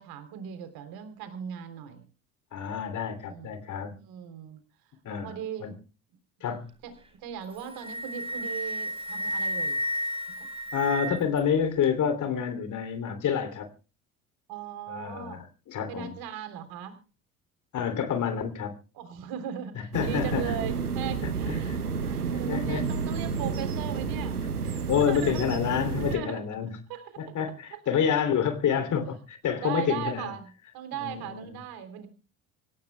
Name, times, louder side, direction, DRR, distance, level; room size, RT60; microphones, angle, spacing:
voice 1, 0.0-2.0 3.3-3.5 3.9-4.6 5.2-5.8 6.8-9.8 10.7-10.8 14.5-15.4 15.9-17.0 18.9-21.8 22.0-25.5 25.9-26.4 26.9-27.4 27.7-27.8 29.6-32.1, right 8 dB, 50° right, 9 dB, 3.5 m, -38 dB
voice 2, 2.5-3.9 5.0-5.3 5.6-5.7 6.4-6.7 10.7-13.7 14.9-16.1 17.7-18.7 19.9-20.5 21.6-21.8 22.5-22.9 24.9-26.7 27.2-30.3 31.0-31.6, left 8 dB, 40° left, 8 dB, 3.1 m, -28 dB
Wind instrument woodwind instrument, 7.4-11.4, equal, 10° right, 4.2 m, -32 dB
sound 1, 19.9-26.2, right 5 dB, 85° right, 1.1 m, -30 dB
26.5 x 14.5 x 2.3 m, 0.35 s
figure-of-eight pair, 60°, 44 cm